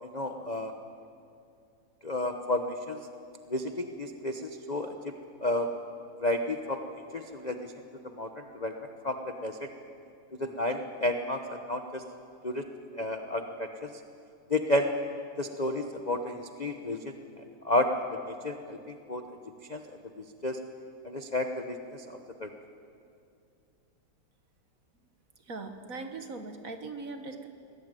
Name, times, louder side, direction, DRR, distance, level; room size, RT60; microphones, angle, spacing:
voice 1, 0.0-0.7 2.0-3.0 3.5-4.9 5.4-5.7 6.2-6.8 7.1-7.6 8.2-8.7 9.0-9.7 10.4-12.0 12.4-12.6 13.0-13.9 14.5-14.9 15.4-17.1 17.6-17.9 18.3-19.2 19.7-19.8 20.4-20.6 21.0-22.5, left 1 dB, 45° left, 5 dB, 0.5 m, -31 dB
voice 2, 25.4-27.5, right 3 dB, 45° right, 6 dB, 1.6 m, -40 dB
22.0 x 18.0 x 9.1 m, 2.5 s
omnidirectional pair, 2.4 m